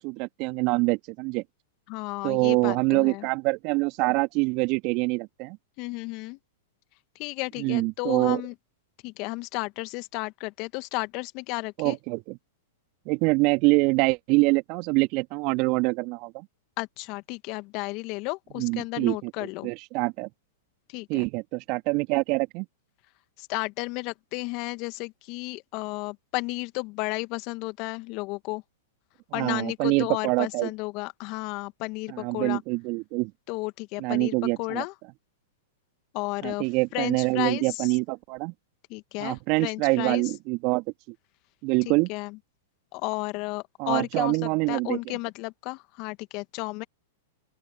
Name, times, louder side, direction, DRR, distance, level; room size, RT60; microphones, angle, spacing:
voice 1, 0.0-1.4 2.2-5.6 7.6-8.4 11.8-12.4 13.0-16.4 18.6-19.3 19.6-20.3 21.1-22.7 29.3-30.7 32.1-33.3 34.0-34.8 36.4-38.5 39.2-41.1 41.6-42.1 43.8-45.0, right 26 dB, 45° right, 3.0 m, -25 dB
voice 2, 1.9-3.3 5.8-6.4 7.2-8.5 9.0-12.0 16.8-19.7 20.9-21.2 23.4-28.6 29.3-32.6 33.5-34.9 36.1-36.6 36.9-37.9 38.9-40.3 41.8-42.4 42.9-44.4 44.7-46.8, left 25 dB, 45° left, 1.6 m, -33 dB
open air
hypercardioid pair, 105°, 0 cm